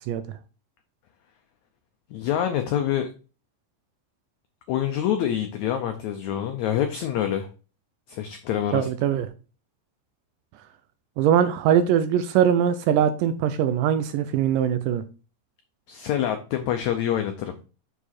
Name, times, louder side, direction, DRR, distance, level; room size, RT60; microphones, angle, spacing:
voice 1, 2.1-3.1 4.7-7.5 8.1-8.9 15.9-17.5, left 10 dB, 90° left, 1.6 m, -26 dB
voice 2, 8.7-9.3 11.2-15.0, right 9 dB, 80° right, 2.0 m, -21 dB
6.8 x 4.7 x 4.3 m
omnidirectional pair, 4.2 m